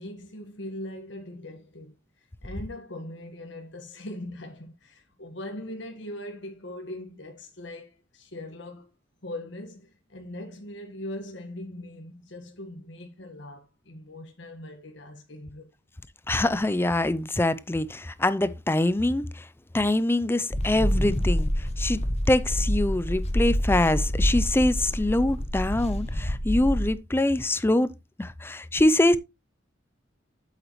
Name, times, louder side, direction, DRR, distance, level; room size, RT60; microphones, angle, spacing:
voice 1, 0.0-8.9 9.2-15.7, left 1 dB, 70° left, 1.5 m, -40 dB
voice 2, 16.3-19.5 19.7-22.0 22.3-27.9 28.2-29.2, left 1 dB, 10° left, 0.5 m, -24 dB
sound 1, 20.5-26.9, equal, 35° left, 1.1 m, -27 dB
8.1 x 8.0 x 3.1 m
head